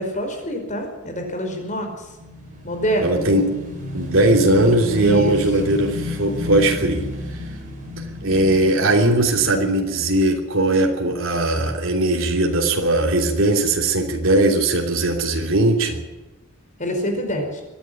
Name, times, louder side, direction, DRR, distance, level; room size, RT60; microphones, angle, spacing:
voice 1, 0.0-1.9 2.6-3.2 5.0-5.7 16.8-17.6, equal, 35° left, 4 dB, 5.1 m, -26 dB
Motorcycle / Engine, 1.9-10.3, left 1 dB, 40° right, 6.5 m, -32 dB
voice 2, 3.0-3.5 3.9-7.1 8.2-16.0, right 1 dB, 70° right, 1 dB, 3.1 m, -19 dB
24.0 x 11.0 x 9.9 m, 1.1 s
head